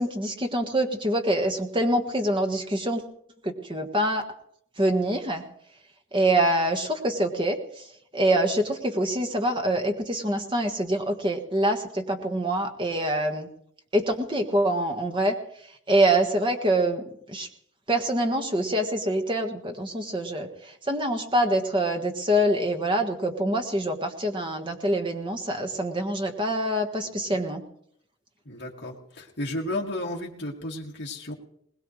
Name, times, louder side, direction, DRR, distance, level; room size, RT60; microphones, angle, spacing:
voice 1, 0.0-3.0 3.4-4.2 4.8-5.4 6.1-7.6 8.1-13.5 13.9-15.3 15.9-17.0 17.3-17.5 17.9-20.5 20.9-27.6, right 1 dB, 20° right, 3 dB, 1.5 m, -25 dB
voice 2, 28.5-31.3, left 1 dB, 55° left, -3 dB, 2.1 m, -33 dB
21.0 x 20.0 x 3.2 m, 0.69 s
head